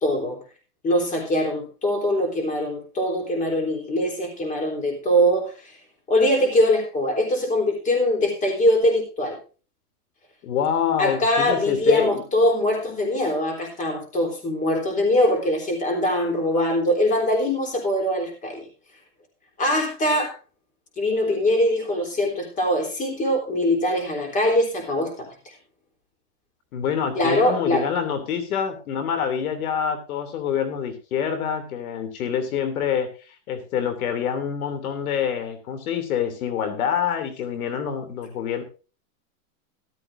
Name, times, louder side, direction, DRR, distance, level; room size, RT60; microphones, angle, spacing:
voice 1, 0.0-0.4 0.8-5.7 6.1-9.4 11.0-18.7 19.6-20.3 21.0-25.3 27.2-27.8, left 1 dB, 15° left, 2 dB, 3.7 m, -22 dB
voice 2, 10.4-12.2 26.7-38.6, left 8 dB, 65° left, 10 dB, 3.0 m, -26 dB
14.0 x 13.0 x 2.6 m, 0.33 s
supercardioid pair, 155°, 46 cm